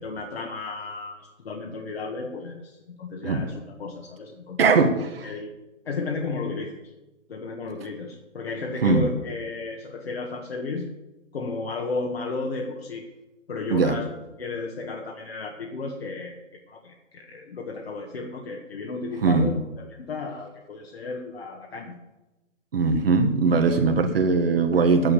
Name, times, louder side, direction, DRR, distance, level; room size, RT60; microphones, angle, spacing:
voice 1, 0.0-4.8 5.2-5.5 5.8-6.8 7.3-10.9 11.3-13.0 13.5-14.0 14.4-16.4 16.7-22.0, left 3 dB, 55° left, 1 dB, 1.7 m, -33 dB
voice 2, 4.6-5.3 8.8-9.1 13.7-14.0 19.2-19.5 22.7-25.1, right 4 dB, 50° right, 6 dB, 1.7 m, -20 dB
11.0 x 9.8 x 6.8 m, 1.0 s
figure-of-eight pair, 145°, 37 cm